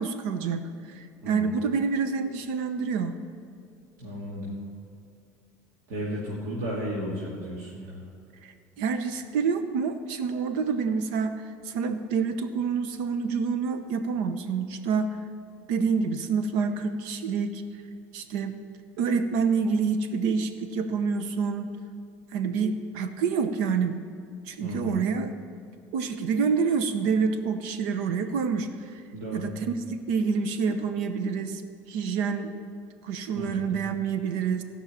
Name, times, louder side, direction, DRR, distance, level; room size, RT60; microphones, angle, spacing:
voice 1, 0.0-3.2 8.4-11.3 11.6-15.2 15.7-17.6 18.1-18.6 19.0-21.8 22.3-24.0 24.5-25.3 25.9-28.9 29.3-31.6 31.9-32.5 33.0-34.6, right 5 dB, 85° right, 9 dB, 0.8 m, -27 dB
voice 2, 1.2-1.5 4.0-4.5 5.9-8.0 24.6-25.0 29.1-29.5 33.3-33.5, equal, 65° right, -6 dB, 2.4 m, -34 dB
16.5 x 5.6 x 8.9 m, 2.4 s
cardioid pair, 165°, 6 cm